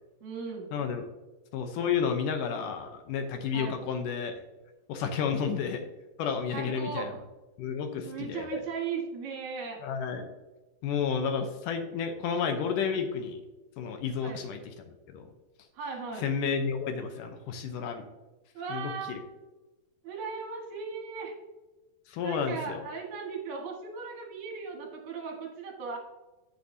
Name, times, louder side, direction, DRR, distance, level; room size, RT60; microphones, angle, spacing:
voice 1, 0.2-0.8 3.5-3.8 5.1-5.5 6.5-7.2 8.0-9.8 14.2-14.4 15.7-16.3 18.5-19.2 20.0-21.3 22.2-26.0, right 5 dB, 60° right, 0 dB, 2.6 m, -37 dB
voice 2, 0.7-1.1 1.5-4.3 4.9-5.8 6.2-7.1 7.6-8.6 9.8-10.3 10.8-13.4 13.8-14.6 14.9-15.3 16.2-18.0 18.7-19.2 22.1-22.8, left 6 dB, 75° left, 6 dB, 2.2 m, -31 dB
9.4 x 8.2 x 2.7 m, 1.1 s
omnidirectional pair, 4.1 m